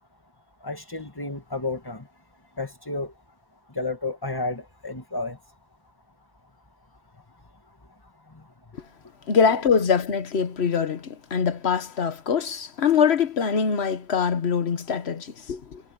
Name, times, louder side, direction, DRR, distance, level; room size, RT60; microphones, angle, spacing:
voice 1, 0.6-2.1 2.5-3.1 3.7-5.5 7.3-7.4 7.7-9.1, left 3 dB, 20° left, 2.1 m, -33 dB
voice 2, 9.3-15.8, left 6 dB, 85° left, 1.4 m, -23 dB
omnidirectional pair, 1.1 m